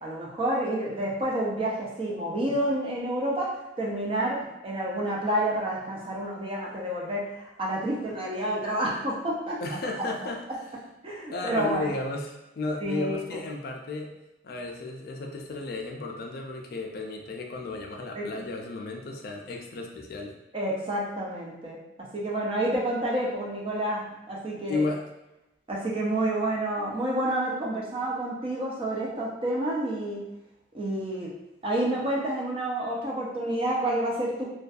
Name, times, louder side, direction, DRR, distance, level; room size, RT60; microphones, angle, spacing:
voice 1, 0.0-9.6 11.0-11.9 12.8-13.2 18.1-18.3 20.5-21.8 22.1-24.8 25.7-30.2 30.7-31.3 31.6-34.5, right 1 dB, 30° right, -3 dB, 0.4 m, -29 dB
voice 2, 9.6-10.4 11.3-14.1 14.4-20.3 24.7-25.1, left 3 dB, 50° left, 1 dB, 0.3 m, -33 dB
2.5 x 2.2 x 2.3 m, 0.95 s
head